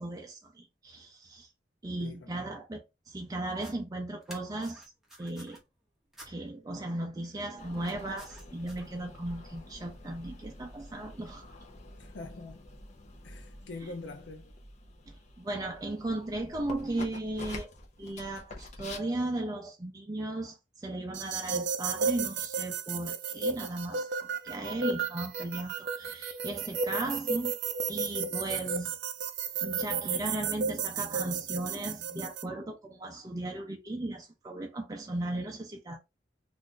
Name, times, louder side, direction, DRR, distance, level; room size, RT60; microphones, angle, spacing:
voice 1, 0.0-1.5 1.8-4.8 5.2-5.6 6.3-11.5 15.1-17.7 18.0-27.5 27.9-29.0 29.6-36.0, right 1 dB, 20° right, 0.4 m, -36 dB
voice 2, 2.0-2.5 12.0-12.6 13.2-14.6, left 3 dB, 75° left, 0.6 m, -44 dB
sound 1, 3.5-3.7 4.2-5.6 6.1-6.3 7.7-8.9, right 1 dB, ahead, 0.9 m, -51 dB
sound 2, 7.6-19.0, left 2 dB, 40° left, 0.7 m, -48 dB
sound 3, 21.1-32.4, right 5 dB, 75° right, 0.5 m, -33 dB
2.5 x 2.5 x 3.6 m
head